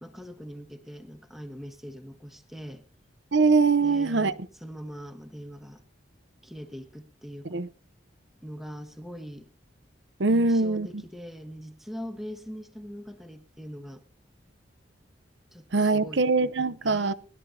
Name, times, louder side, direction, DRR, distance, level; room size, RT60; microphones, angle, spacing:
voice 1, 0.0-2.8 3.8-5.8 6.4-7.7 8.4-9.5 10.3-14.0 15.5-16.3 16.8-17.1, equal, ahead, 1.3 m, -42 dB
voice 2, 3.3-4.3 7.4-7.7 10.2-11.0 15.7-17.1, right 3 dB, 65° right, 0.7 m, -23 dB
21.0 x 12.0 x 2.8 m
head